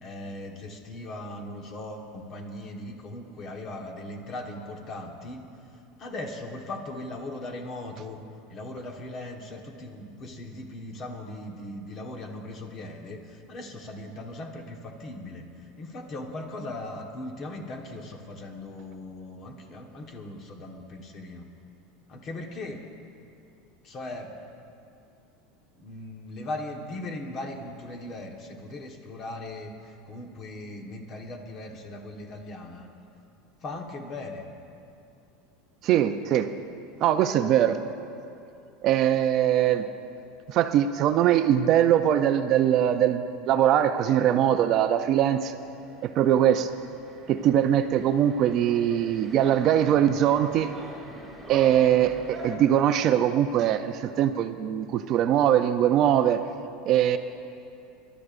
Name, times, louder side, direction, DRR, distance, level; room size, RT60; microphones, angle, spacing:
voice 1, 0.0-5.4 6.0-8.2 8.5-15.4 15.8-21.5 22.1-22.8 23.8-24.3 25.8-29.7 30.1-32.9 33.6-34.4, left 2 dB, 30° left, 3 dB, 1.3 m, -38 dB
voice 2, 35.8-36.5 37.0-37.8 38.8-39.9 40.5-45.6 46.0-46.7 47.3-50.7 51.5-56.4 56.9-57.2, right 10 dB, 40° right, 9 dB, 0.5 m, -22 dB
sound 1, 45.4-52.5, right 1 dB, 10° right, 2.6 m, -43 dB
26.5 x 12.0 x 2.6 m, 2.6 s
supercardioid pair, 150°, 0 cm